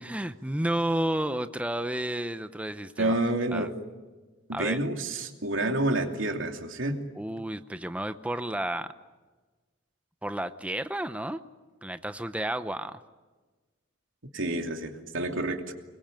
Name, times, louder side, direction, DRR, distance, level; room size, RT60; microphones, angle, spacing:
voice 1, 0.0-3.2 3.5-3.7 4.5-4.8 7.2-8.9 10.2-11.4 11.8-13.0, right 1 dB, 5° right, 10 dB, 0.7 m, -31 dB
voice 2, 3.0-3.7 4.5-7.0 14.3-15.7, right 2 dB, 90° right, 4 dB, 2.8 m, -29 dB
25.0 x 22.5 x 9.0 m, 1.3 s
head